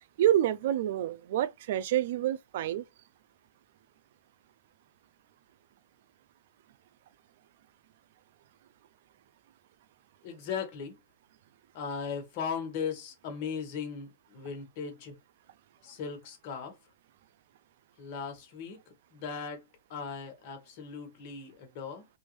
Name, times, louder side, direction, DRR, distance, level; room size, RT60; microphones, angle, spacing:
voice 1, 0.2-2.8, right 12 dB, 60° right, 0.4 m, -27 dB
voice 2, 10.2-11.0 11.7-15.2 15.8-16.7 18.0-19.6 19.9-22.1, left 6 dB, 45° left, 1.4 m, -38 dB
3.4 x 2.5 x 3.1 m
hypercardioid pair, 150°, 0 cm